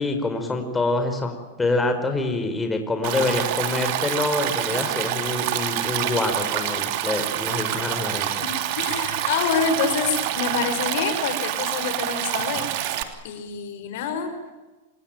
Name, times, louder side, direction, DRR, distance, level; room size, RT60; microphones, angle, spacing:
voice 1, 0.0-8.4, left 2 dB, 10° left, 5 dB, 5.0 m, -26 dB
Stream, 3.0-13.0, right 12 dB, 55° right, 3.1 m, -27 dB
voice 2, 8.4-13.0 13.2-14.3, left 6 dB, 65° left, 8 dB, 5.4 m, -27 dB
27.5 x 20.5 x 9.1 m, 1.2 s
hypercardioid pair, 120°, 0 cm